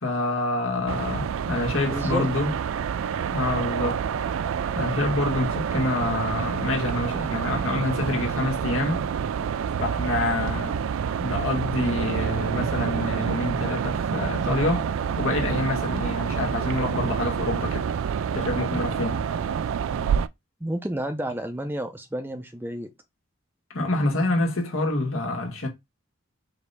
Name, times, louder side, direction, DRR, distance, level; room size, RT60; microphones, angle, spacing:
voice 1, 0.0-2.5 3.3-4.1 4.8-9.1 9.8-10.8 11.2-17.9 18.3-19.3 23.7-25.7, left 2 dB, 80° left, 1.7 m, -27 dB
sound 1, 0.9-20.3, right 7 dB, 75° right, 0.3 m, -28 dB
voice 2, 1.9-2.3 20.6-22.9, right 1 dB, 10° right, 0.5 m, -30 dB
5.1 x 2.8 x 3.3 m
head